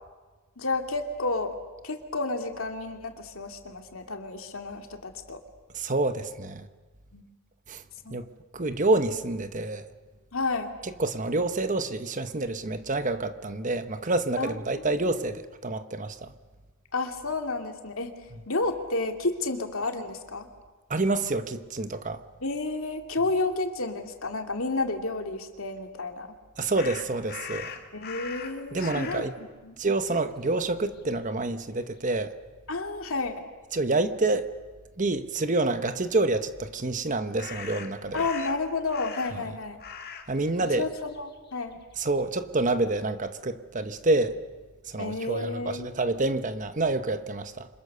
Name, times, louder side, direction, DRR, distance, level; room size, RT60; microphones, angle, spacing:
voice 1, 0.6-1.5 1.8-5.4 7.1-7.3 8.0-8.2 10.3-10.7 14.4-15.2 16.9-18.1 18.5-20.5 22.4-26.3 27.9-29.8 32.7-33.3 38.1-39.8 40.7-41.8 45.0-45.9, left 3 dB, 70° left, 2.6 m, -31 dB
voice 2, 5.7-6.7 7.7-7.8 8.1-8.3 8.5-9.8 10.8-16.3 20.9-22.2 26.6-27.7 28.7-29.3 29.8-32.3 33.7-34.5 35.0-38.2 40.3-40.9 42.0-44.3 44.9-47.7, right 2 dB, 35° right, 1.1 m, -27 dB
sound 1, 26.8-29.3 30.1-30.3 30.6-31.5 37.4-39.5 39.8-40.3 40.6-42.2, left 6 dB, 45° left, 2.1 m, -41 dB
29.0 x 26.0 x 6.8 m
head